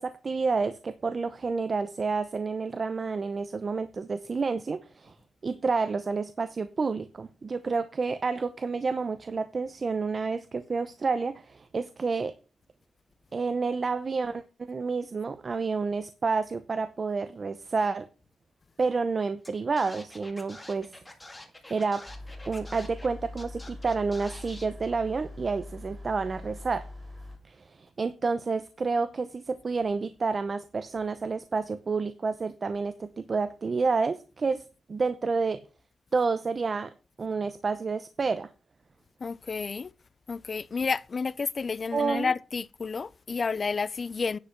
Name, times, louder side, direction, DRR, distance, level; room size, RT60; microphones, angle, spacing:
voice 1, 0.0-5.1 5.4-12.3 13.3-14.4 14.7-18.1 18.8-20.9 21.7-22.0 22.5-26.9 27.4-34.6 34.9-35.6 36.1-36.9 37.2-38.5 41.9-42.3, right 4 dB, 40° right, 0.7 m, -29 dB
Scratching (performance technique), 19.4-19.5 19.8-23.1 23.4-24.7, left 1 dB, 15° left, 2.1 m, -46 dB
sound 1, 22.1-27.4, left 2 dB, 15° right, 3.8 m, -43 dB
voice 2, 39.2-39.9 40.3-44.4, left 5 dB, 40° left, 0.5 m, -30 dB
10.5 x 5.3 x 5.9 m
wide cardioid pair, 110°, 0 cm